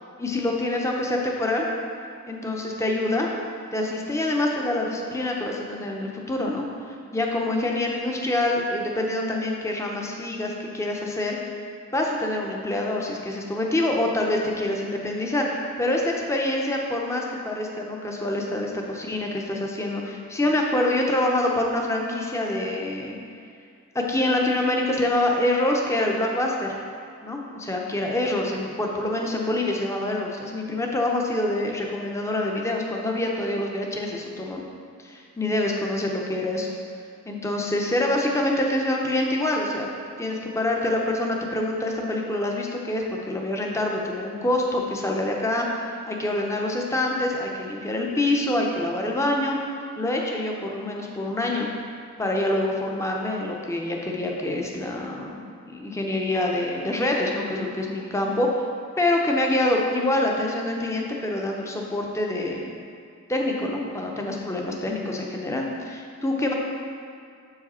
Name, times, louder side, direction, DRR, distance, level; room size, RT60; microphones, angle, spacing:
voice 1, 0.2-1.7 2.3-3.3 3.7-11.4 11.9-23.1 23.9-26.7 27.2-34.6 35.0-36.8 37.3-39.9 40.2-49.6 50.0-51.7 52.2-58.6 59.0-62.8 63.3-66.5, left 1 dB, 15° left, 0 dB, 0.6 m, -26 dB
7.0 x 4.8 x 4.2 m, 2.3 s
head